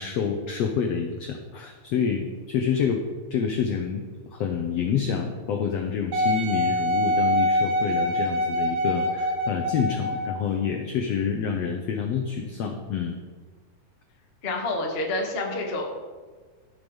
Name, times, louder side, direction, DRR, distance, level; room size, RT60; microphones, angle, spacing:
voice 1, 0.0-3.0 3.3-4.0 4.3-13.2, left 7 dB, 85° left, 4 dB, 1.4 m, -27 dB
Wind instrument woodwind instrument, 6.1-10.4 11.1-11.2, equal, 75° right, 3.2 m, -24 dB
voice 2, 14.4-16.0, left 2 dB, 55° left, 0 dB, 0.6 m, -28 dB
14.0 x 6.7 x 5.4 m, 1.4 s
omnidirectional pair, 4.0 m